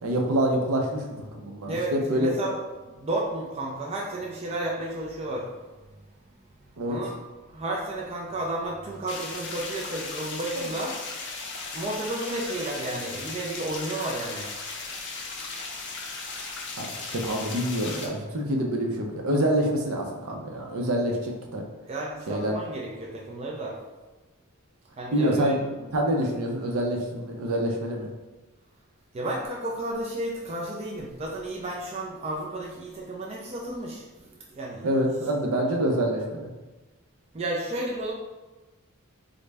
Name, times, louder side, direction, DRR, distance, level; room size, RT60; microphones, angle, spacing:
voice 1, 0.0-1.0 1.3-2.3 6.8-7.0 10.6-10.7 16.8-21.6 22.3-22.5 25.1-25.6 25.9-28.1 34.8-36.5, right 1 dB, 70° right, 1 dB, 0.6 m, -26 dB
voice 2, 1.7-2.6 2.9-5.5 6.9-7.2 7.5-10.9 11.7-14.5 21.9-23.8 25.0-25.6 29.1-34.9 37.3-38.1, right 1 dB, 30° right, -3 dB, 0.4 m, -32 dB
sound 1, 9.1-18.1, left 3 dB, 55° left, 0.5 m, -37 dB
3.8 x 2.1 x 3.3 m, 1.2 s
head